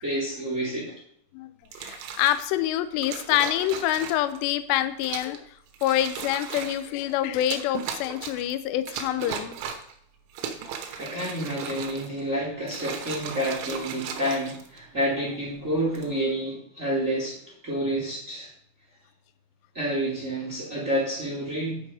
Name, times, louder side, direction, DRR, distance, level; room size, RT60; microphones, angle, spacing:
voice 1, 0.0-0.9 10.9-17.4 17.6-18.5 19.7-21.8, right 1 dB, 20° right, -6 dB, 2.1 m, -29 dB
sound 1, 1.7-2.5 3.0-4.4 5.0-5.4 5.7-6.9 7.4-8.5 8.9-9.9 10.3-12.2 12.6-15.0 15.8-16.1, right 7 dB, 75° right, 3.3 m, -36 dB
voice 2, 1.8-5.4 5.8-9.6, left 12 dB, 90° left, 11 dB, 2.5 m, -26 dB
10.5 x 6.0 x 4.8 m, 0.65 s
omnidirectional pair, 5.7 m